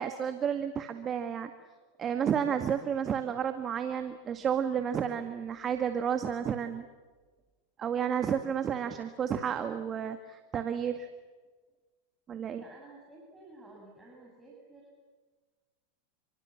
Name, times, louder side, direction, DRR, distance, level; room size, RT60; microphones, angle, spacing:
voice 1, 0.0-1.5 2.0-6.8 7.8-11.1 12.3-12.6, right 8 dB, 30° right, 8 dB, 1.9 m, -31 dB
voice 2, 12.5-15.1, right 2 dB, 10° right, -3 dB, 7.7 m, -53 dB
30.0 x 25.5 x 7.5 m, 1.4 s
hypercardioid pair, 100°, 0 cm